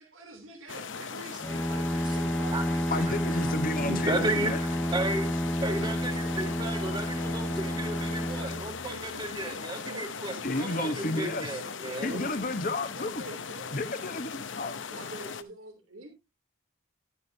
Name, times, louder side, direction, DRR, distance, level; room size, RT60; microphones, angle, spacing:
voice 1, 0.0-4.9 9.4-9.6 9.8-11.3 11.7-12.4 12.9-13.8 14.9-16.1, right 2 dB, 85° right, 3.1 m, -46 dB
sound 1, 0.7-15.4, left 5 dB, 65° left, 0.8 m, -39 dB
Bowed string instrument, 1.4-9.4, equal, 5° left, 0.6 m, -30 dB
voice 2, 2.9-4.6 10.4-11.6 12.0-13.2 13.7-14.8, left 2 dB, 45° left, 1.1 m, -32 dB
voice 3, 3.8-4.5 4.9-5.3 5.6-12.2, right 2 dB, 20° right, 1.8 m, -33 dB
11.5 x 9.7 x 2.8 m
head